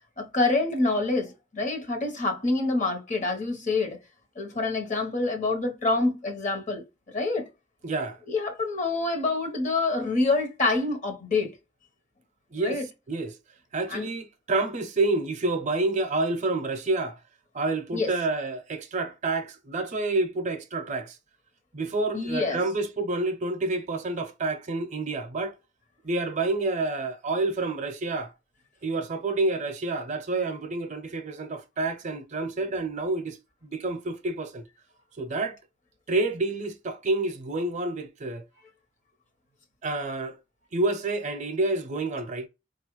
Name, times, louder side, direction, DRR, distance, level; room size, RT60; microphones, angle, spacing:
voice 1, 0.2-4.0 4.4-6.8 7.1-7.5 8.3-11.5 12.6-12.9 13.9-14.1 17.9-18.1 22.1-22.6, left 3 dB, 40° left, 1.0 m, -26 dB
voice 2, 7.8-8.2 12.5-12.8 13.1-13.4 13.7-17.2 17.5-21.2 21.7-25.6 26.0-28.3 28.8-34.6 35.2-35.6 36.1-38.4 39.8-40.4 40.7-42.5, right 2 dB, 40° right, 0.6 m, -28 dB
4.2 x 2.4 x 3.0 m
head